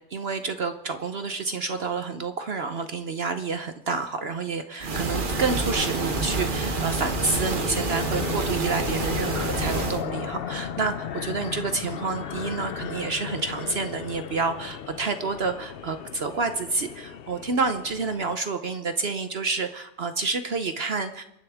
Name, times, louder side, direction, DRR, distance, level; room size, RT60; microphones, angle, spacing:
voice 1, 0.1-21.2, right 4 dB, 55° right, 9 dB, 0.7 m, -29 dB
sound 1, 4.8-10.0, right 3 dB, 35° right, 1.1 m, -28 dB
sound 2, 5.1-18.3, left 8 dB, 80° left, 0.5 m, -36 dB
27.0 x 10.5 x 3.5 m, 0.88 s
omnidirectional pair, 1.7 m